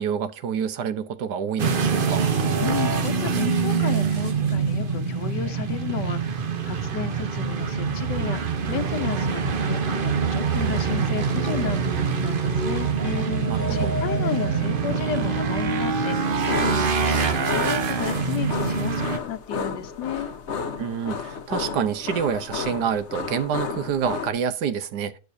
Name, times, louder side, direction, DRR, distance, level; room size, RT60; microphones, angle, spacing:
voice 1, 0.0-2.3 13.5-14.0 20.8-25.2, right 7 dB, 75° right, 1.4 m, -27 dB
sound 1, 1.6-19.2, right 5 dB, 50° right, 0.6 m, -25 dB
voice 2, 2.6-6.4 6.6-12.9 13.7-20.3, left 9 dB, 80° left, 1.5 m, -33 dB
sound 2, 12.5-17.7, left 1 dB, 30° left, 0.3 m, -33 dB
sound 3, 16.5-24.3, left 6 dB, 50° left, 1.0 m, -32 dB
10.5 x 6.5 x 2.6 m
omnidirectional pair, 1.9 m